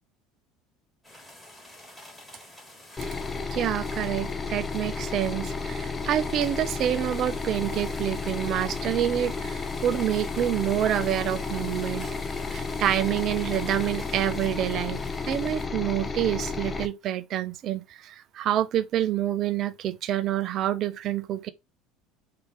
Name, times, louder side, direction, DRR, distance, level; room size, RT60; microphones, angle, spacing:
sound 1, 1.0-15.7, left 1 dB, 5° left, 3.0 m, -47 dB
sound 2, 3.0-16.9, left 4 dB, 20° left, 0.8 m, -32 dB
voice 1, 3.5-12.1 12.5-15.0 15.2-21.5, right 11 dB, 50° right, 0.5 m, -27 dB
4.2 x 3.4 x 3.3 m
hypercardioid pair, 75°, 0 cm